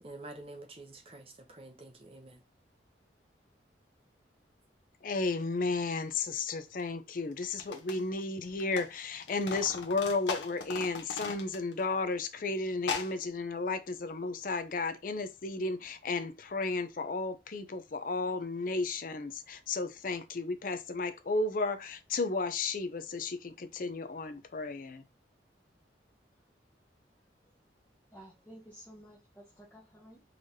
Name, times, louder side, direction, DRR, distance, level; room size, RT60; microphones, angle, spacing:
voice 1, 0.0-2.4, right 2 dB, 30° right, 0.7 m, -48 dB
voice 2, 5.0-25.0, left 3 dB, 50° left, 0.5 m, -33 dB
sound 1, 6.8-6.9 7.4-8.9 9.1-11.8 12.1-12.2 12.8-13.1, left 5 dB, 85° left, 0.8 m, -38 dB
voice 3, 28.1-30.2, equal, 10° left, 0.7 m, -53 dB
3.9 x 3.2 x 2.7 m
head